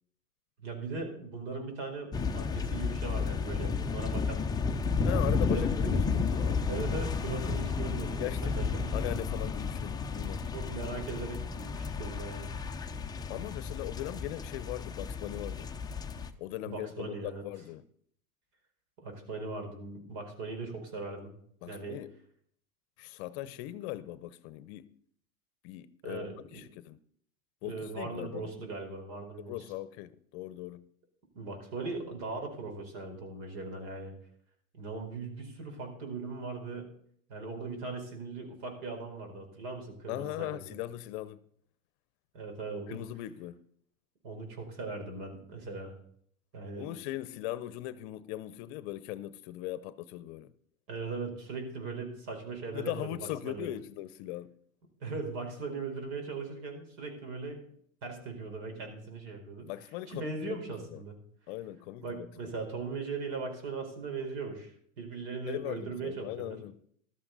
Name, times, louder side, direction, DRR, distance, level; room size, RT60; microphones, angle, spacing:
voice 1, 0.6-4.4 5.5-6.1 6.6-8.9 10.5-12.5 16.7-17.4 19.0-21.3 21.6-22.0 26.0-26.6 27.6-29.6 31.3-34.1 34.7-36.9 37.3-40.7 42.3-43.0 44.2-46.0 46.5-46.9 50.9-53.2 53.4-53.7 55.0-57.7 58.0-59.7 60.1-61.1 62.0-66.6, right 3 dB, 55° right, 4.6 m, -39 dB
sound 1, 2.1-16.3, left 4 dB, 10° left, 0.6 m, -32 dB
voice 2, 5.0-6.6 8.2-10.5 13.3-15.7 16.4-17.8 21.6-22.1 23.0-24.9 25.6-27.0 27.6-28.6 29.4-30.8 40.1-41.4 42.9-43.6 46.7-50.5 52.7-54.5 59.6-60.6 60.9-61.0 61.5-62.5 65.5-66.8, left 14 dB, 50° left, 0.8 m, -39 dB
14.0 x 12.5 x 4.0 m
hypercardioid pair, 110°, 42 cm